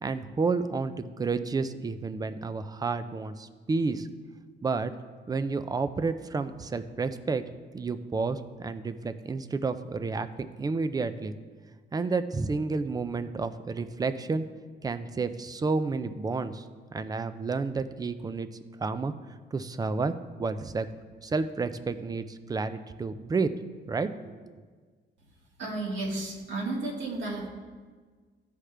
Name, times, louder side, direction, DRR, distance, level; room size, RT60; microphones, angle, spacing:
voice 1, 0.0-4.1 4.6-4.9 5.3-7.4 7.7-11.3 11.9-14.5 14.8-16.6 16.9-18.5 18.8-19.1 19.5-20.9 21.2-23.5 23.9-24.3, right 4 dB, 20° right, 11 dB, 0.4 m, -30 dB
voice 2, 25.6-27.5, right 2 dB, 85° right, -4 dB, 1.9 m, -32 dB
14.5 x 5.0 x 3.3 m, 1.5 s
cardioid pair, 135°, 19 cm